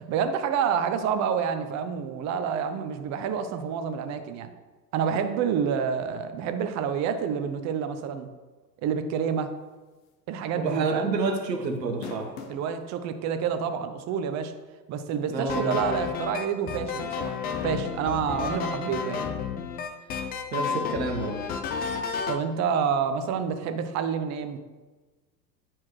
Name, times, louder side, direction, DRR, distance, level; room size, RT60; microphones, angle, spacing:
voice 1, 0.0-4.5 4.9-8.3 8.8-9.5 10.3-11.2 12.5-14.5 14.9-17.3 17.6-19.2 22.3-24.6, right 7 dB, 35° right, 9 dB, 0.7 m, -28 dB
sound 1, 10.1-10.3 10.6-10.7 11.7-12.7 13.4-13.5 15.1-15.2, left 5 dB, 45° left, 1.1 m, -41 dB
voice 2, 10.6-12.3 15.3-15.8 20.5-21.4, right 4 dB, 75° right, 3 dB, 1.5 m, -28 dB
sound 2, 15.5-22.4, left 6 dB, 20° left, 0.4 m, -31 dB
9.3 x 4.5 x 3.2 m, 1.3 s
hypercardioid pair, 95°, 50 cm